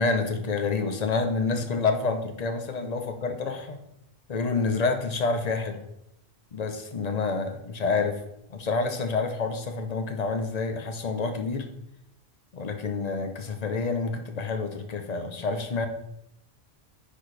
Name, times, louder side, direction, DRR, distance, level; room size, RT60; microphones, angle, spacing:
voice 1, 0.0-3.8 4.3-5.9 6.5-8.2 8.5-11.7 12.5-15.9, left 4 dB, 45° left, 6 dB, 0.7 m, -28 dB
9.9 x 4.2 x 3.3 m, 0.82 s
omnidirectional pair, 1.1 m